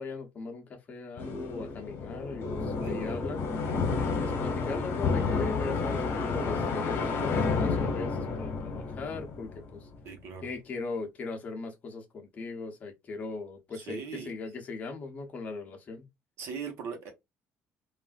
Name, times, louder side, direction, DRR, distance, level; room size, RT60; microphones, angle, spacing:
voice 1, 0.0-3.4 4.0-9.9 10.4-16.1, left 3 dB, 35° left, 0.9 m, -39 dB
sound 1, 1.2-10.0, left 4 dB, 50° left, 1.2 m, -30 dB
voice 2, 2.8-3.2 10.0-10.5 13.7-14.3 16.4-17.1, right 6 dB, 65° right, 1.0 m, -40 dB
3.4 x 2.5 x 2.4 m
cardioid pair, 165°, 5 cm